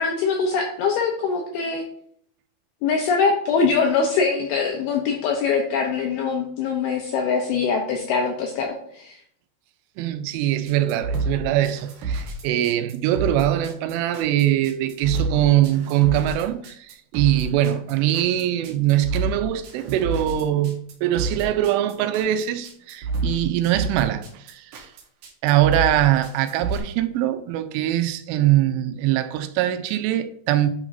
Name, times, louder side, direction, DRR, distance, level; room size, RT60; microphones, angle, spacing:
voice 1, 0.0-1.8 2.8-9.2, left 5 dB, 80° left, 2.3 m, -23 dB
voice 2, 10.0-24.9 25.4-30.7, right 12 dB, 90° right, 3.2 m, -22 dB
sound 1, 10.7-26.8, right 3 dB, 70° right, 2.0 m, -29 dB
9.7 x 6.1 x 2.6 m
omnidirectional pair, 5.5 m